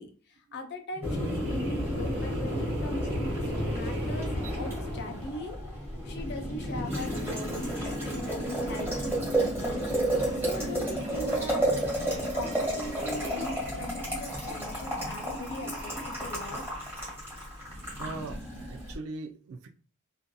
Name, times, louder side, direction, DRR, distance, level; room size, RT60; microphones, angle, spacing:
voice 1, 0.0-3.3 3.6-4.3 4.6-10.1 10.4-11.7 12.0-16.6, left 2 dB, 50° left, 4 dB, 0.5 m, -40 dB
sound 1, 0.9-5.8 6.6-8.9 9.6-16.4, equal, 50° right, 0.7 m, -43 dB
Boiling, 1.0-18.9, right 1 dB, 10° right, 1.4 m, -32 dB
voice 2, 18.0-19.7, right 3 dB, 70° right, 4 dB, 0.3 m, -40 dB
2.7 x 2.4 x 2.2 m, 0.38 s
head